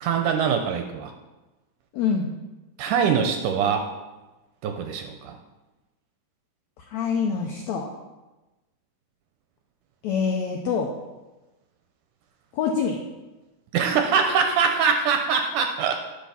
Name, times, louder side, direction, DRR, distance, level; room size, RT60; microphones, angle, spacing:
voice 1, 0.0-1.1 2.8-3.9 4.6-5.4 13.7-16.0, right 6 dB, 80° right, 5 dB, 2.0 m, -23 dB
voice 2, 1.9-2.3 6.8-7.9 10.0-10.9 12.5-13.0, left 6 dB, 85° left, 2 dB, 1.6 m, -25 dB
10.5 x 5.9 x 5.7 m, 1.1 s
omnidirectional pair, 4.1 m